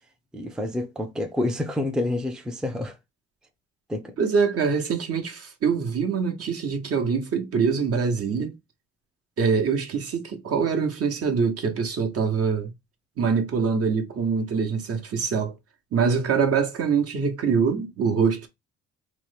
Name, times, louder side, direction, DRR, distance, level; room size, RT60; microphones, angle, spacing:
voice 1, 0.3-2.9 3.9-4.1, left 1 dB, ahead, 0.5 m, -28 dB
voice 2, 4.2-8.6 9.4-12.7 13.2-15.5 15.9-18.5, right 5 dB, 50° right, 0.9 m, -24 dB
3.0 x 2.1 x 3.1 m
cardioid pair, 90°, 30 cm